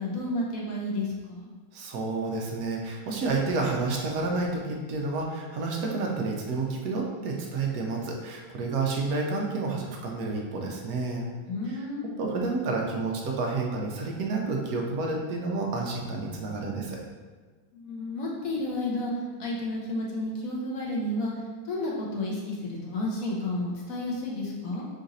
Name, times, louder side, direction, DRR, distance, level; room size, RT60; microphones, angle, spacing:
voice 1, 0.0-1.5 11.5-12.1 17.7-19.1 19.4-21.3 21.7-24.8, left 2 dB, 65° left, -3 dB, 1.2 m, -31 dB
voice 2, 1.7-11.2 11.7-11.8 12.2-17.0, right 3 dB, 80° right, 0 dB, 1.1 m, -30 dB
3.9 x 2.5 x 4.0 m, 1.4 s
omnidirectional pair, 1.6 m